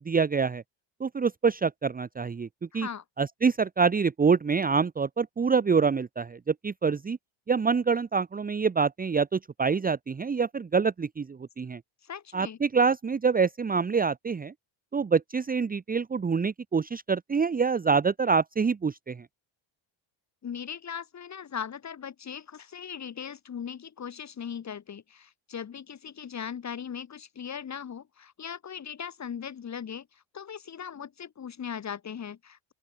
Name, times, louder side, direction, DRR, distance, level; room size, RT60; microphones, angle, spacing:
voice 1, 0.0-0.6 1.0-2.5 2.7-2.9 3.2-7.2 7.5-11.8 12.3-14.5 14.9-19.3, right 5 dB, 20° right, 1.0 m, -26 dB
voice 2, 2.7-3.0 12.0-12.6 20.4-32.7, left 8 dB, 35° left, 2.6 m, -39 dB
open air
cardioid pair, 145°, 48 cm